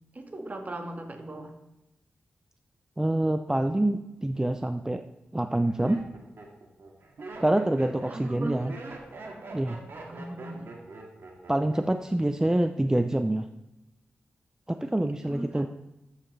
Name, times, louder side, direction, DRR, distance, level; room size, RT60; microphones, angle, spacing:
voice 1, 0.1-1.5 8.1-8.7 10.1-10.7 15.2-15.7, right 1 dB, 40° right, 4 dB, 1.7 m, -38 dB
voice 2, 3.0-5.0 5.3-6.0 7.4-8.7 9.5-9.8 11.5-13.5 14.7-15.7, right 1 dB, 15° right, 8 dB, 0.6 m, -26 dB
Laughter, 4.7-4.8 5.4-12.1 12.3-12.8, right 3 dB, 70° right, 2.1 m, -44 dB
13.0 x 8.2 x 3.3 m, 0.95 s
cardioid pair, 55°, 4 cm